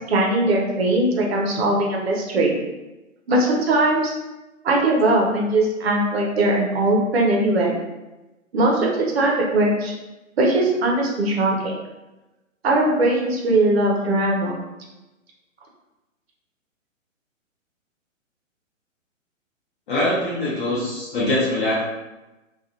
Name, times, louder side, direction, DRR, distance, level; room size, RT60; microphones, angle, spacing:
voice 1, 0.1-2.6 3.3-4.1 4.6-7.8 8.5-9.9 10.4-11.7 12.6-14.6, right 2 dB, 50° right, -1 dB, 0.8 m, -20 dB
voice 2, 19.9-21.8, left 1 dB, 40° left, -8 dB, 0.8 m, -23 dB
2.4 x 2.3 x 2.8 m, 1.0 s
figure-of-eight pair, 130°, 40 cm